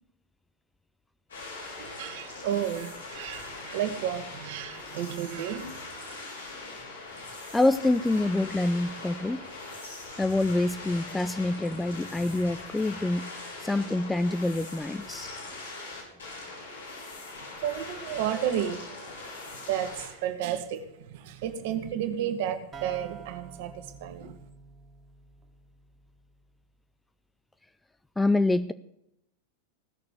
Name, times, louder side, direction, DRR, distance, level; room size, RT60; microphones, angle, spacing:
sound 1, 1.3-20.1, left 2 dB, 70° left, 5.0 m, -41 dB
voice 1, 1.8-5.9 17.6-18.8 19.5-24.3, right 10 dB, 50° right, 8 dB, 1.5 m, -32 dB
voice 2, 7.5-9.4 10.2-13.3 13.6-15.3 28.2-28.7, left 2 dB, 5° left, 13 dB, 0.4 m, -26 dB
sound 2, 22.7-26.4, right 6 dB, 20° right, 1.8 m, -48 dB
16.0 x 6.7 x 8.0 m, 0.81 s
figure-of-eight pair, 90°, 0 cm